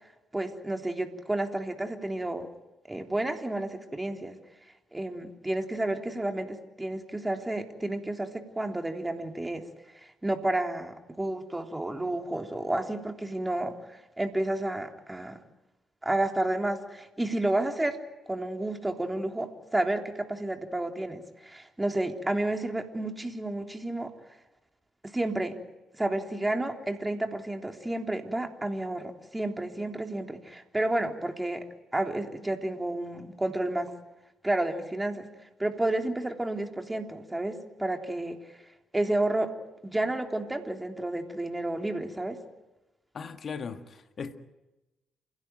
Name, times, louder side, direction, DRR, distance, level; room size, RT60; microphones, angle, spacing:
voice 1, 0.3-2.5 2.9-4.4 4.9-9.6 9.9-15.4 16.0-18.0 18.3-24.1 25.0-25.6 25.9-31.7 31.9-33.9 34.4-35.3 35.6-38.4 38.9-39.5 39.8-42.4, right 1 dB, 15° right, 3.5 m, -31 dB
voice 2, 43.1-44.4, left 5 dB, 50° left, 1.8 m, -38 dB
28.5 x 16.5 x 9.2 m
hypercardioid pair, 45°, 0 cm